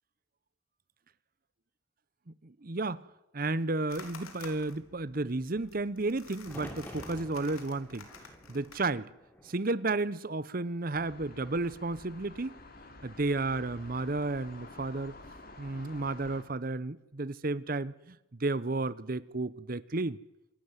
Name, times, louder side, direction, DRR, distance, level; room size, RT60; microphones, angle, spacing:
voice 1, 2.4-3.0 3.3-8.1 8.5-9.1 9.4-12.6 13.0-15.1 15.6-20.2, right 2 dB, 40° right, 0.8 m, -32 dB
sound 1, 3.9-8.9, left 4 dB, 90° left, 4.0 m, -51 dB
sound 2, 6.4-10.5 10.8-11.6 13.5-14.0, equal, 10° left, 3.2 m, -50 dB
sound 3, 10.9-16.4, left 2 dB, 45° left, 3.0 m, -50 dB
26.5 x 12.0 x 9.7 m
head